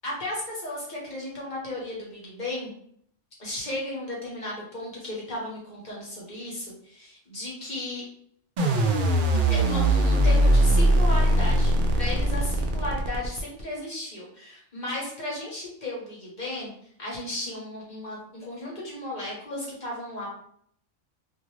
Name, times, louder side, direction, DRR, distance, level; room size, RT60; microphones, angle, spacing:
voice 1, 0.0-2.7 3.4-8.0 9.5-16.7 17.0-20.3, left 1 dB, 40° left, -4 dB, 1.0 m, -35 dB
sound 1, 8.6-13.6, right 1 dB, 60° right, 0.6 m, -21 dB
2.5 x 2.3 x 3.1 m, 0.65 s
omnidirectional pair, 1.2 m